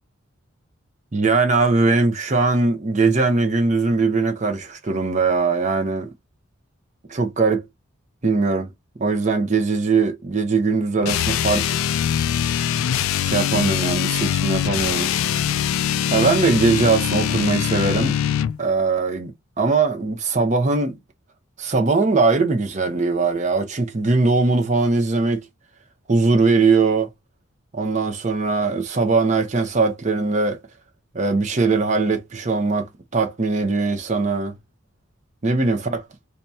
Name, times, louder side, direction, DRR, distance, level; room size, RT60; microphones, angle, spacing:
voice 1, 1.1-6.1 7.1-7.6 8.2-8.7 9.0-11.8 13.2-15.2 16.1-18.2 18.6-19.3 19.6-21.0 21.6-25.4 26.1-27.1 27.7-30.6 31.1-34.5 35.4-36.0, right 3 dB, 35° right, 0.6 m, -20 dB
sound 1, 11.0-18.6, left 9 dB, 80° left, 0.3 m, -22 dB
2.9 x 2.3 x 4.0 m
head